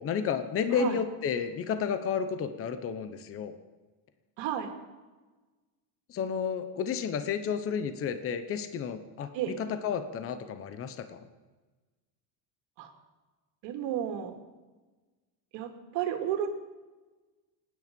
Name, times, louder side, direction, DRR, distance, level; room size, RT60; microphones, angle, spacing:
voice 1, 0.0-3.5 6.1-11.2, left 7 dB, 30° left, 10 dB, 0.9 m, -32 dB
voice 2, 4.4-4.7 9.3-9.6 12.8-12.9 13.6-14.3 15.5-16.5, right 10 dB, 70° right, 5 dB, 2.4 m, -32 dB
27.5 x 9.6 x 5.3 m, 1.3 s
cardioid pair, 175°, 45 cm